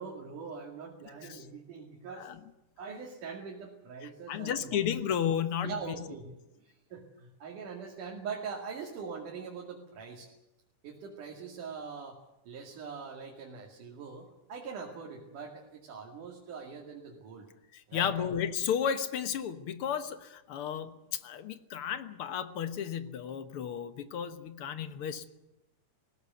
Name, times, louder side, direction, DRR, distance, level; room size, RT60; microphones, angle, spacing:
voice 1, 0.0-2.3 2.8-4.8 5.6-10.3 10.8-12.2 12.5-17.5 17.9-18.3, right 5 dB, 85° right, -1 dB, 3.9 m, -42 dB
voice 2, 4.3-5.9 17.7-25.3, left 8 dB, 60° left, 11 dB, 1.7 m, -33 dB
20.0 x 17.0 x 9.4 m, 0.94 s
omnidirectional pair, 3.5 m